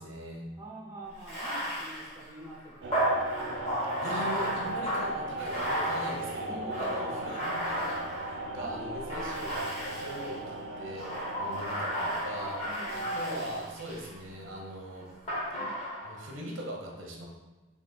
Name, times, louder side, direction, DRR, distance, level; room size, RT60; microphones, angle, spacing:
voice 1, 0.0-0.5 4.0-11.1 11.4-12.6 12.9-15.1 16.0-17.3, right 1 dB, 80° right, -1 dB, 0.9 m, -40 dB
voice 2, 0.6-3.2 6.4-7.4 8.6-9.4 12.6-13.6, right 1 dB, 15° right, -4 dB, 0.6 m, -45 dB
Bathtub (filling or washing), 1.2-8.5 9.1-10.4 10.9-14.1 15.3-16.2, equal, 30° left, 1.2 m, -34 dB
sound 1, 2.8-13.6, right 1 dB, 65° right, 0.4 m, -37 dB
4.0 x 2.8 x 3.9 m, 1.2 s
head